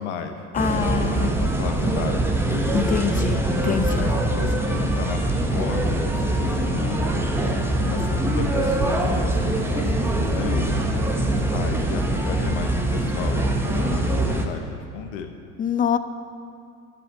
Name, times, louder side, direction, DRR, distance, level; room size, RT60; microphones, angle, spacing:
voice 1, 0.0-0.4 0.7-0.9 1.2-2.7 3.9-5.2 5.5-7.0 7.8-10.7 11.5-15.3, left 7 dB, 55° left, 6 dB, 1.0 m, -34 dB
voice 2, 0.5-1.4 2.7-4.1 15.6-16.0, left 8 dB, 20° left, 12 dB, 0.5 m, -25 dB
sound 1, 0.5-14.5, right 1 dB, 5° right, 1.2 m, -23 dB
12.0 x 7.1 x 7.5 m, 2.5 s
figure-of-eight pair, 70°, 42 cm